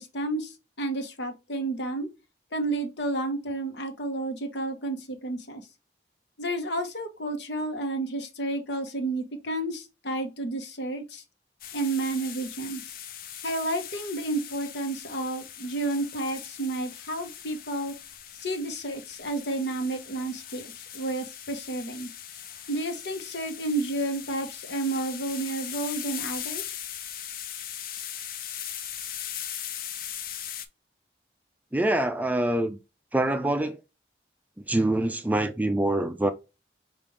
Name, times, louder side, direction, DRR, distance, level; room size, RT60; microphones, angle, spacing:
voice 1, 0.0-2.1 2.5-5.6 6.4-11.2 11.7-12.9 13.4-17.9 18.3-22.1 22.7-26.6, right 2 dB, 75° left, 1.0 m, -31 dB
sound 1, 11.6-30.7, left 9 dB, 50° left, 0.5 m, -39 dB
voice 2, 31.7-32.8 33.1-33.8 34.6-36.3, right 1 dB, 10° right, 0.3 m, -25 dB
5.3 x 2.5 x 3.2 m
head